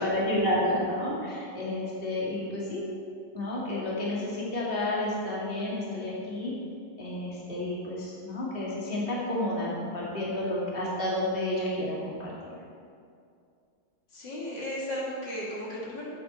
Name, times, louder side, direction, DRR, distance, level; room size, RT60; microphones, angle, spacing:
voice 1, 0.0-2.8 3.3-6.5 7.0-12.3, left 1 dB, 30° left, -6 dB, 2.4 m, -30 dB
voice 2, 14.1-16.1, equal, 75° left, -5 dB, 2.9 m, -35 dB
13.5 x 8.1 x 4.4 m, 2.4 s
omnidirectional pair, 1.9 m